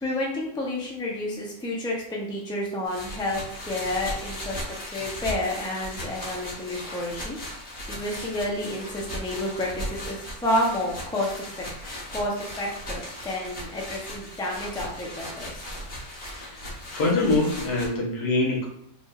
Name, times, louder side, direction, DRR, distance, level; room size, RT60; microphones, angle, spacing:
voice 1, 0.0-7.4 7.9-11.6 12.1-15.6, left 1 dB, 5° left, -3 dB, 0.6 m, -30 dB
sound 1, 2.9-17.9, equal, 45° left, 1.6 m, -37 dB
voice 2, 16.2-16.6 16.9-18.7, left 2 dB, 80° left, -3 dB, 1.7 m, -24 dB
4.4 x 3.4 x 2.5 m, 0.73 s
omnidirectional pair, 1.7 m